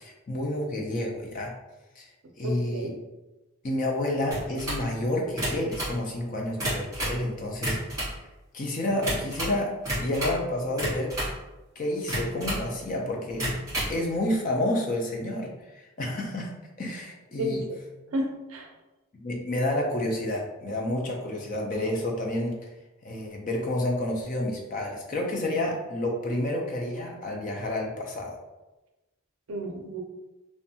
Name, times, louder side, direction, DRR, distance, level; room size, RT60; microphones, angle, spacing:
voice 1, 0.0-1.5 2.0-2.1 2.4-2.9 3.6-7.8 8.5-11.1 11.8-13.4 13.9-16.5 16.8-17.6 19.1-22.5 23.0-28.4, left 1 dB, 35° left, 0 dB, 0.4 m, -29 dB
voice 2, 2.4-3.0 17.4-17.8 18.1-18.7 29.5-30.0, equal, 70° right, 2 dB, 0.4 m, -32 dB
Stapler Sound, 4.3-4.9 5.3-6.0 6.4-7.2 7.5-8.2 9.0-9.6 9.8-10.4 10.8-11.4 12.1-12.7 13.3-14.0, right 1 dB, 15° right, 1.3 m, -30 dB
2.6 x 2.2 x 2.7 m, 1.1 s
head